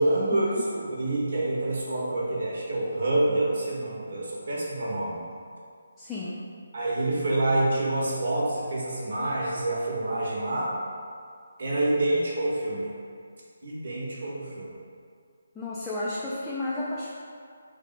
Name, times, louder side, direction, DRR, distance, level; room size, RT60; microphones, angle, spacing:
voice 1, 0.0-5.2 6.7-10.7 11.6-12.9 13.6-14.7, right 1 dB, 60° right, -5 dB, 1.0 m, -27 dB
voice 2, 6.0-6.4 15.5-17.1, left 2 dB, 10° left, -9 dB, 0.4 m, -32 dB
3.5 x 2.1 x 3.8 m, 2.2 s
figure-of-eight pair, 150°, 0 cm